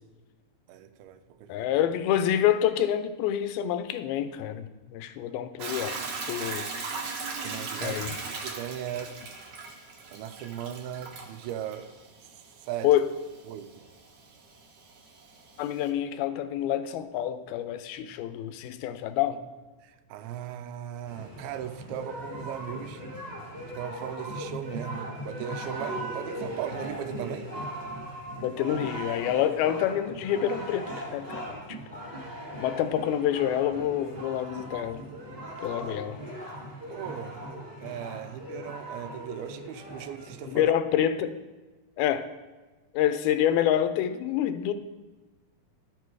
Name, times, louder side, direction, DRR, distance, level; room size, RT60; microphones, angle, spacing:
voice 1, 0.7-1.7 7.4-8.0 8.3-9.2 10.1-11.9 12.6-12.9 13.5-13.9 19.8-23.0 23.8-27.5 36.9-37.4 37.8-40.7, right 10 dB, 90° right, 10 dB, 2.6 m, -38 dB
voice 2, 1.5-6.0 6.3-6.7 7.8-8.1 12.8-13.1 15.6-19.4 28.4-31.8 32.6-35.0 35.6-36.2 40.5-41.3 42.0-42.3 42.9-44.7, left 11 dB, 90° left, 11 dB, 2.5 m, -27 dB
Hiss / Toilet flush / Trickle dribble, 5.6-15.9, right 4 dB, 60° right, 1.8 m, -39 dB
sound 1, 21.1-40.6, right 1 dB, 10° right, 1.5 m, -39 dB
12.0 x 6.8 x 4.7 m, 1.2 s
omnidirectional pair, 4.3 m